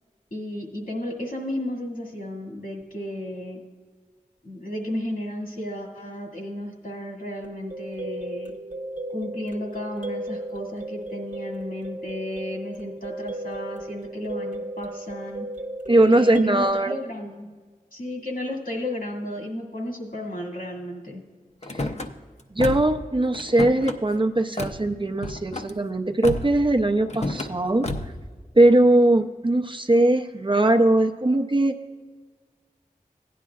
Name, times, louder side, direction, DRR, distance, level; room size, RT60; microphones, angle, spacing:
voice 1, 0.3-3.6 4.4-8.6 9.1-15.5 16.1-17.5 17.9-21.2, left 1 dB, 75° left, -1 dB, 2.1 m, -33 dB
sound 1, 7.4-16.7, right 1 dB, 60° right, 0.9 m, -35 dB
voice 2, 15.9-17.0 21.7-21.9 22.5-27.9 28.5-31.8, right 1 dB, 35° right, 5 dB, 0.6 m, -20 dB
Car / Slam, 21.6-22.1 22.6-23.0 23.3-24.0 24.6-24.8 25.2-25.7 26.2-26.6 27.1-27.5 27.8-28.2, left 2 dB, 50° left, 0.6 m, -30 dB
16.0 x 10.0 x 2.4 m, 1.4 s
wide cardioid pair, 50°, 15 cm